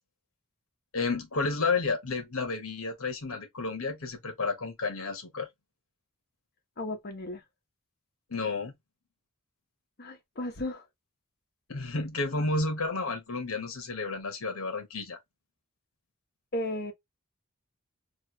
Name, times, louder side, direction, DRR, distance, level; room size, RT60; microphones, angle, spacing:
voice 1, 0.9-5.5 8.3-8.7 11.7-15.2, left 3 dB, 70° left, 1.0 m, -31 dB
voice 2, 6.8-7.4 10.0-10.8 16.5-16.9, left 1 dB, 45° left, 0.9 m, -34 dB
3.2 x 2.3 x 3.0 m
head